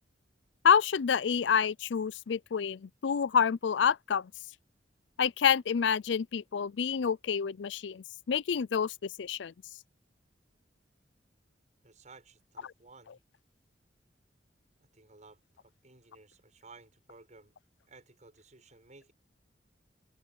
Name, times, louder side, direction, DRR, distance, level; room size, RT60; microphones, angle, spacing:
voice 1, 0.6-4.3 5.2-9.5, left 7 dB, 75° left, 0.4 m, -28 dB
voice 2, 11.8-13.2 14.9-17.5 17.9-19.1, right 3 dB, 45° right, 6.9 m, -56 dB
head